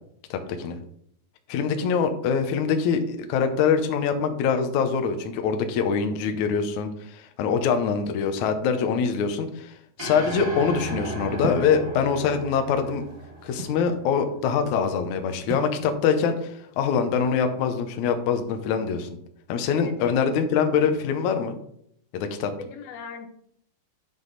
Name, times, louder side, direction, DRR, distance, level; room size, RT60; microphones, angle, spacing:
voice 1, 0.3-0.8 1.5-9.7 10.0-13.0 13.4-19.1 19.5-21.6 22.1-22.5, left 6 dB, 70° left, 6 dB, 1.9 m, -24 dB
sound 1, 10.0-14.4, right 1 dB, 35° right, 1.3 m, -35 dB
sound 2, 11.4-11.8 12.7-13.9 15.5-15.8, right 3 dB, 85° right, 3.3 m, -32 dB
voice 2, 19.7-20.2 22.6-23.3, left 6 dB, 85° left, 7 dB, 2.8 m, -40 dB
9.8 x 5.5 x 4.0 m, 0.68 s
omnidirectional pair, 4.2 m